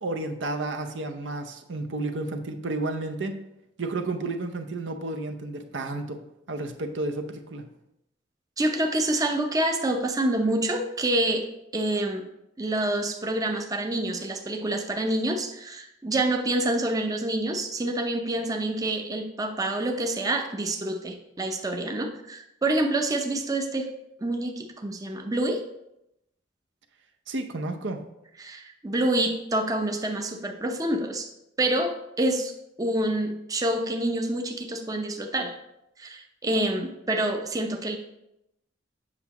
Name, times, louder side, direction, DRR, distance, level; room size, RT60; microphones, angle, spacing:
voice 1, 0.0-3.4 3.8-7.7 27.3-28.0, right 2 dB, 75° right, 6 dB, 0.7 m, -32 dB
voice 2, 8.6-11.5 11.7-12.3 12.6-23.9 24.2-25.6 28.4-31.3 31.6-32.5 32.8-35.6 36.0-38.0, right 1 dB, 20° right, 4 dB, 0.5 m, -27 dB
7.8 x 5.8 x 2.9 m, 0.84 s
head